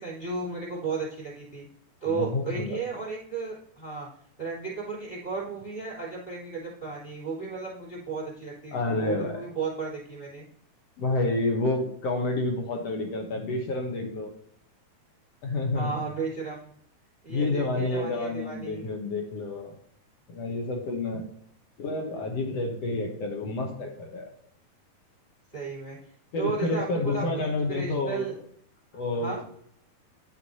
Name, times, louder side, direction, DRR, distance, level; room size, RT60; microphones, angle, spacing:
voice 1, 0.0-1.6 2.0-4.1 4.4-10.4 15.7-16.7 17.2-18.8 25.5-26.0 26.4-28.3 29.2-29.4, right 4 dB, 15° left, -6 dB, 3.2 m, -34 dB
voice 2, 2.1-2.8 8.7-9.4 11.0-14.3 15.4-16.0 17.3-19.7 20.3-21.2 21.8-24.3 26.3-28.2 28.9-29.4, left 2 dB, 65° left, 1 dB, 1.8 m, -29 dB
10.0 x 6.4 x 2.8 m, 0.65 s
omnidirectional pair, 3.9 m